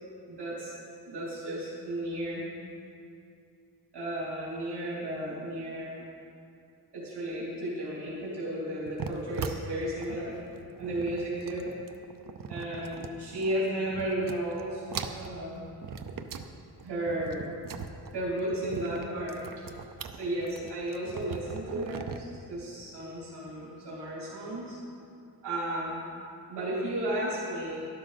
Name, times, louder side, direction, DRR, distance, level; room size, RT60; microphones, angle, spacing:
voice 1, 0.3-0.7 1.1-2.4 3.9-6.1 6.9-10.3 10.8-11.7 12.5-15.7 16.8-17.5 18.1-19.4 20.1-24.8 25.4-26.0 26.5-27.8, right 1 dB, 90° right, -7 dB, 3.3 m, -34 dB
sound 1, 8.9-13.6 13.9-14.6 14.9-16.5 16.8-22.2, right 6 dB, 55° right, 0.7 m, -40 dB
12.5 x 12.0 x 4.1 m, 2.6 s
wide cardioid pair, 165°, 39 cm